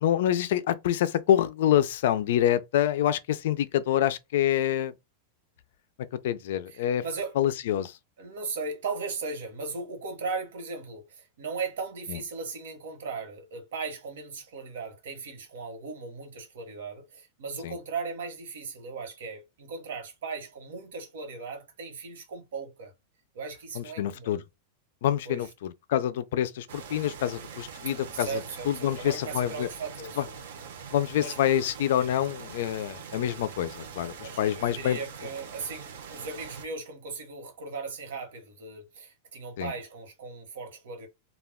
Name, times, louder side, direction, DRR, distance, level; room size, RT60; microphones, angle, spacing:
voice 1, 0.0-4.9 6.2-7.0 7.4-7.9 12.1-12.2 17.6-17.7 23.8-24.4 25.0-28.4 28.7-29.7 30.2-30.3 30.9-35.0 39.6-39.7, left 11 dB, 55° left, 0.3 m, -26 dB
voice 2, 6.7-7.4 8.2-22.9 23.3-24.4 25.2-25.5 27.8-30.4 31.2-31.4 31.9-32.1 34.2-41.1, right 4 dB, 85° right, 1.1 m, -37 dB
sound 1, 26.7-36.7, right 6 dB, 65° right, 0.6 m, -43 dB
2.2 x 2.2 x 3.4 m
supercardioid pair, 180°, 0 cm